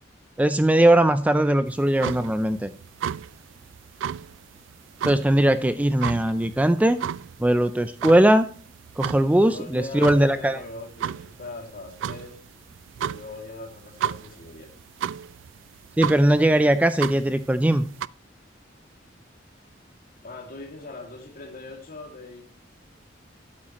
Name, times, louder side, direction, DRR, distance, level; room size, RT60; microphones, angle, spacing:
voice 1, 0.4-2.7 5.0-7.0 7.4-8.5 9.0-10.6 16.0-17.9, right 1 dB, 10° right, 11 dB, 0.4 m, -20 dB
sound 1, 1.7-18.1, right 9 dB, 80° right, 0.3 m, -34 dB
voice 2, 9.4-12.4 13.0-14.8 20.2-22.4, left 3 dB, 50° left, 3 dB, 2.4 m, -40 dB
11.5 x 8.7 x 3.0 m, 0.42 s
head